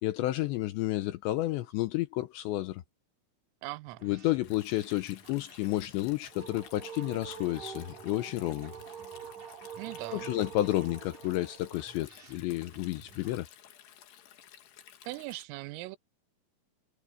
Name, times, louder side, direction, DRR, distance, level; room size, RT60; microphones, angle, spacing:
voice 1, 0.0-2.8 4.0-8.7 10.1-13.5, left 16 dB, 80° left, 2.6 m, -31 dB
voice 2, 3.6-4.0 9.8-10.3 15.0-16.0, right 21 dB, 90° right, 3.3 m, -40 dB
sound 1, 3.9-13.4, right 4 dB, 40° right, 3.8 m, -57 dB
Stream, 4.4-15.4, left 10 dB, 60° left, 3.5 m, -55 dB
sound 2, 6.0-12.1, right 7 dB, 65° right, 3.2 m, -45 dB
omnidirectional pair, 5.9 m